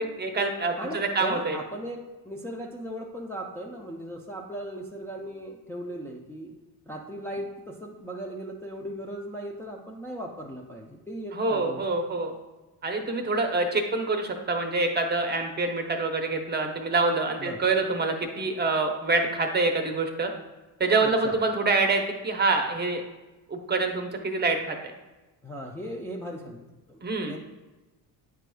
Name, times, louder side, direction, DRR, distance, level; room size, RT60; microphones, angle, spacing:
voice 1, 0.0-1.6 11.3-12.3 12.8-20.3 20.8-23.0 23.5-24.8 27.0-27.3, right 3 dB, 25° right, 4 dB, 0.8 m, -26 dB
voice 2, 0.8-2.0 2.2-6.5 6.9-11.8 17.4-17.6 21.0-21.4 25.4-27.0 27.3-27.4, right 1 dB, 5° left, -2 dB, 0.5 m, -37 dB
9.0 x 4.7 x 2.3 m, 1.1 s
cardioid pair, 115°, 38 cm